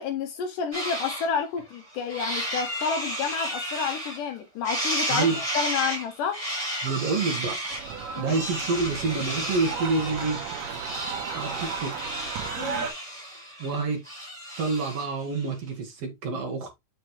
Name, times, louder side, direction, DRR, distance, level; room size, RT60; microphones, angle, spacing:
voice 1, 0.0-6.4 8.2-8.4 12.6-12.9, left 6 dB, 80° left, 1.9 m, -30 dB
sound 1, 0.7-1.3 1.7-4.4 4.6-15.1, right 1 dB, 10° right, 3.2 m, -33 dB
voice 2, 5.1-5.4 6.8-7.6 8.2-10.4 11.3-12.0 13.6-14.0 14.6-16.8, right 4 dB, 55° right, 1.9 m, -27 dB
sound 2, 7.7-12.9, right 7 dB, 75° right, 3.3 m, -35 dB
7.1 x 6.2 x 3.1 m
omnidirectional pair, 4.7 m